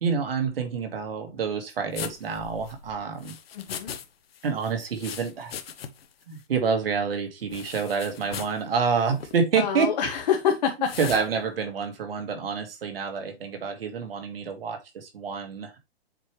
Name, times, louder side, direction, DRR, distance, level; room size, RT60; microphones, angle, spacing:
voice 1, 0.0-3.3 4.4-5.5 6.3-9.9 11.0-15.8, right 5 dB, 60° right, 2.1 m, -28 dB
sound 1, 1.9-4.1 4.3-6.1 6.4-6.5 7.5-8.6 9.1-9.4 10.8-11.3, left 8 dB, 65° left, 1.2 m, -38 dB
voice 2, 3.5-3.9 9.6-10.9, left 8 dB, 40° left, 1.5 m, -26 dB
7.3 x 4.7 x 3.3 m
hypercardioid pair, 165°, 32 cm